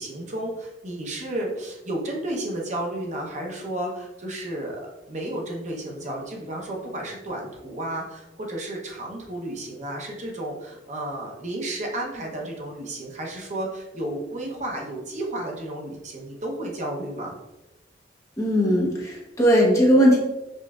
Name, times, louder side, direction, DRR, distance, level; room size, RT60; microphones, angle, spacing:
voice 1, 0.0-4.8 5.1-17.4, right 1 dB, 40° right, 0 dB, 0.7 m, -32 dB
voice 2, 18.4-20.2, equal, 15° left, -3 dB, 0.8 m, -18 dB
5.2 x 2.5 x 2.3 m, 0.98 s
head